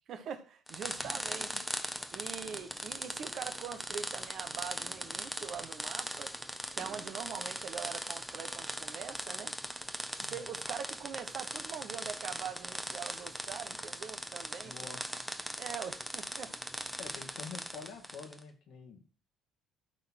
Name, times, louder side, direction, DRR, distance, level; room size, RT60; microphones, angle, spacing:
voice 1, 0.1-1.6 2.1-6.3 6.7-9.5 10.2-14.9 15.6-16.5, right 7 dB, 60° right, 1.2 m, -43 dB
sound 1, 0.7-18.4, equal, 5° right, 1.1 m, -40 dB
voice 2, 1.0-1.6 10.2-10.5 14.6-15.0 17.0-19.1, left 5 dB, 70° left, 2.2 m, -48 dB
12.0 x 4.2 x 4.3 m
hypercardioid pair, 60°, 0 cm